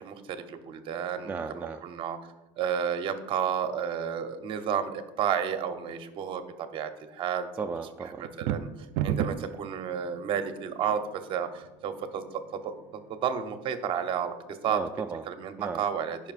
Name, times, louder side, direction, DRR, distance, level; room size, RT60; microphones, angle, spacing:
voice 1, 0.0-2.2 2.6-7.5 8.2-8.7 9.0-14.3 14.6-14.8 15.3-16.2, right 8 dB, 45° right, 8 dB, 0.8 m, -31 dB
voice 2, 1.2-1.8 7.6-8.3 14.7-15.2 15.6-15.8, right 5 dB, 15° right, 4 dB, 0.3 m, -35 dB
sound 1, 8.2-9.6, right 10 dB, 75° right, 0.4 m, -29 dB
13.5 x 5.7 x 2.5 m, 1.0 s
cardioid pair, 125°, 12 cm